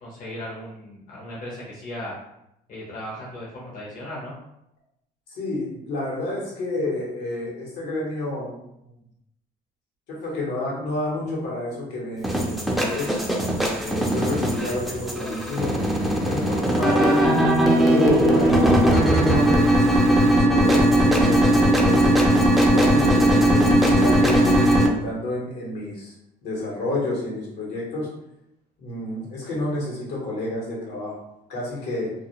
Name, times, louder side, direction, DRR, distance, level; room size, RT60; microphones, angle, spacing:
voice 1, 0.0-2.1 2.7-4.3, left 1 dB, 55° left, -4 dB, 0.7 m, -36 dB
voice 2, 5.3-8.6 10.1-13.2 13.8-17.6 17.9-18.6 19.1-22.2 22.7-26.1 26.4-28.1 28.8-31.2 31.5-32.1, left 2 dB, 85° left, -4 dB, 1.1 m, -29 dB
sound 1, 12.2-24.9, right 1 dB, ahead, 0.4 m, -19 dB
2.3 x 2.1 x 2.8 m, 0.81 s
cardioid pair, 110°, 17 cm